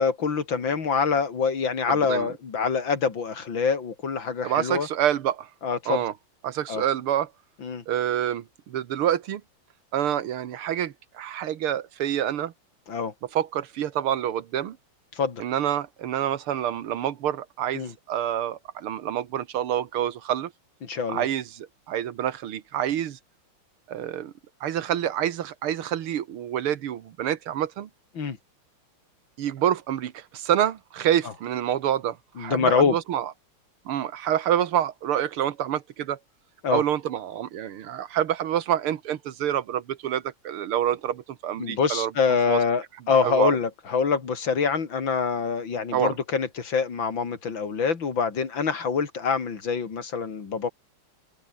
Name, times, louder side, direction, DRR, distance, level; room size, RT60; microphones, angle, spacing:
voice 1, 0.0-4.9 5.6-6.0 6.7-6.8 7.6-7.8 12.9-13.1 15.1-15.4 17.7-17.9 20.8-21.3 28.2-28.4 32.4-33.0 36.6-36.8 41.6-50.7, left 5 dB, 60° left, 3.3 m, -25 dB
voice 2, 1.9-2.3 4.4-5.5 5.9-6.1 6.4-7.3 7.9-9.4 9.9-12.5 13.3-14.8 15.4-20.5 21.1-23.2 23.9-24.3 24.6-27.9 29.4-33.3 33.9-36.2 36.7-42.1 42.5-42.6 43.2-43.6 45.9-46.1, right 10 dB, 90° right, 2.1 m, -27 dB
open air
omnidirectional pair, 2.3 m